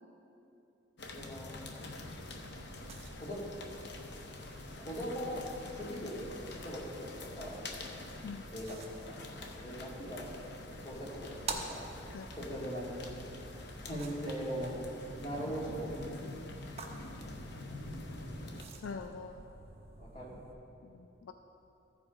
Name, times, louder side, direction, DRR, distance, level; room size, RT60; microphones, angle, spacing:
sound 1, 1.0-18.6, left 2 dB, 60° left, 0.8 m, -46 dB
voice 1, 1.1-1.5 3.2-3.4 4.7-5.5 5.7-6.2 6.6-7.6 8.5-8.8 9.0-9.2 9.6-10.3 10.8-11.8 12.3-12.9 13.8-14.7 15.2-15.9 20.0-20.5, equal, 35° left, -5 dB, 2.1 m, -40 dB
sound 2, 2.4-20.5, right 3 dB, 30° right, 0.8 m, -49 dB
voice 2, 18.8-19.5 20.8-21.3, left 5 dB, 80° left, 7 dB, 0.4 m, -44 dB
14.5 x 5.0 x 4.8 m, 2.8 s
head